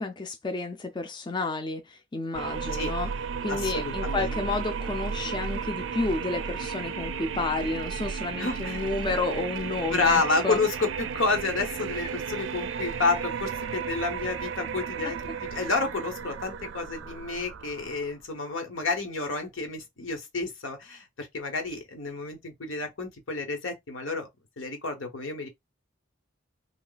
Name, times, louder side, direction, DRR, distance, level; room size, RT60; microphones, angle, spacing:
voice 1, 0.0-3.1 3.4-10.6, left 3 dB, 25° left, 0.4 m, -31 dB
sound 1, 2.3-18.2, right 6 dB, 70° right, 0.4 m, -34 dB
voice 2, 3.5-4.4 8.4-8.8 9.9-24.3 24.6-25.5, left 3 dB, 80° left, 1.2 m, -30 dB
3.2 x 2.4 x 3.9 m
head